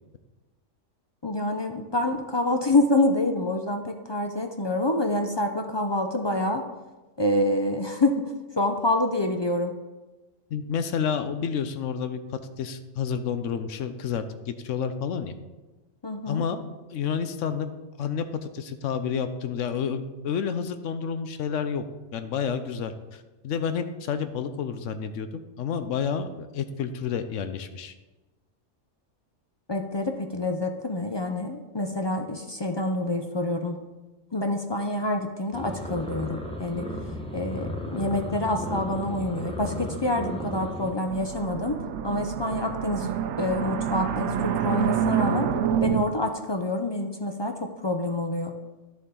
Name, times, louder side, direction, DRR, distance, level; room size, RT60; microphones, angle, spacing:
voice 1, 1.2-6.6 7.2-8.2 8.5-9.7 16.0-16.4 29.7-33.8 34.3-36.8 37.3-41.8 42.0-43.1 43.4-45.5 45.8-48.5, left 1 dB, 40° left, 5 dB, 0.4 m, -27 dB
voice 2, 10.5-15.4 16.3-16.6 16.9-17.7 18.0-21.8 22.1-27.9, left 7 dB, 80° left, 10 dB, 1.0 m, -30 dB
sound 1, 35.5-40.9, left 1 dB, 5° left, 0.8 m, -34 dB
sound 2, 41.1-46.0, right 8 dB, 75° right, 0.9 m, -27 dB
11.0 x 6.8 x 3.8 m, 1.1 s
omnidirectional pair, 1.3 m